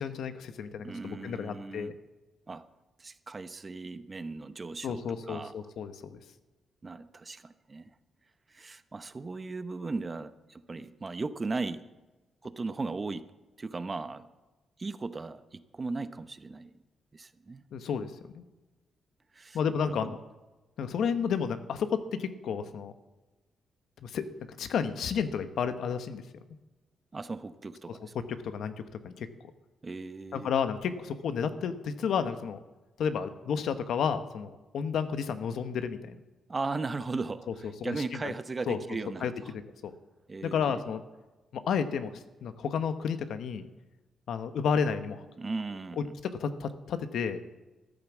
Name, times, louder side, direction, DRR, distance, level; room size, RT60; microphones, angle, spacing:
voice 1, 0.0-1.9 4.8-6.2 17.7-18.4 19.5-20.2 20.8-22.9 24.0-24.2 24.6-26.2 28.4-28.7 29.0-29.3 30.3-32.6 33.0-36.2 37.8-38.2 38.7-38.8 39.2-39.3 39.8-39.9 40.4-41.0 41.5-43.7 44.3-45.3 46.4-47.4, left 7 dB, 75° left, 10 dB, 1.1 m, -31 dB
voice 2, 0.8-1.9 2.5-2.7 3.0-5.7 6.8-7.9 8.5-11.8 12.4-13.2 13.6-14.3 14.8-16.8 17.1-17.6 19.3-20.2 27.1-28.1 29.8-30.5 36.5-39.5 40.3-40.8 45.4-46.1, right 3 dB, 30° right, 12 dB, 0.8 m, -37 dB
13.5 x 11.0 x 7.2 m, 1.1 s
cardioid pair, 95°, 0 cm